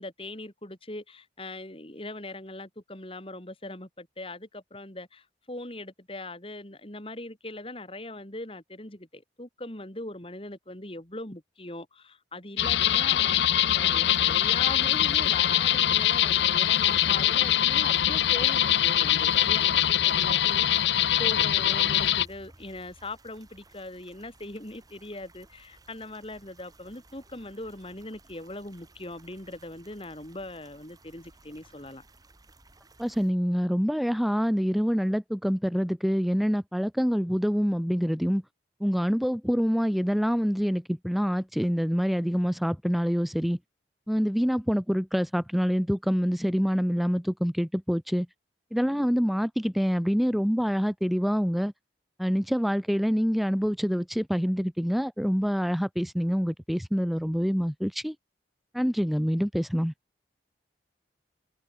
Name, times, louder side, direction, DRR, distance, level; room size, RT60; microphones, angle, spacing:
voice 1, 0.0-19.7 20.0-20.9 21.2-32.0, left 2 dB, 30° left, 3.0 m, -40 dB
sound 1, 12.6-22.3, left 11 dB, 70° left, 0.6 m, -23 dB
sound 2, 14.1-33.3, right 2 dB, 20° right, 2.8 m, -56 dB
voice 2, 33.0-38.4 38.8-43.6 44.1-48.3 48.7-51.7 52.2-58.2 58.7-59.9, equal, ahead, 0.4 m, -26 dB
head